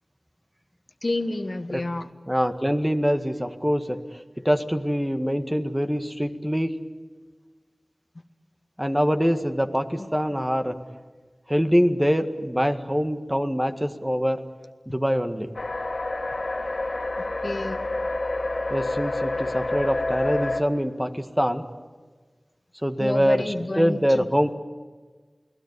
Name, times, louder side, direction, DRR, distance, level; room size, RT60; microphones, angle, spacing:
voice 1, 1.0-2.1 10.0-10.1 17.2-17.9 23.0-24.3, left 2 dB, 60° left, 9 dB, 1.5 m, -29 dB
voice 2, 2.3-6.8 8.8-10.8 11.5-14.5 14.9-15.5 18.7-21.7 22.8-24.5, equal, 10° right, 7 dB, 1.8 m, -24 dB
sound 1, 15.5-20.6, left 2 dB, 85° left, 2.3 m, -28 dB
28.5 x 20.0 x 9.7 m, 1.4 s
wide cardioid pair, 50°, 0 cm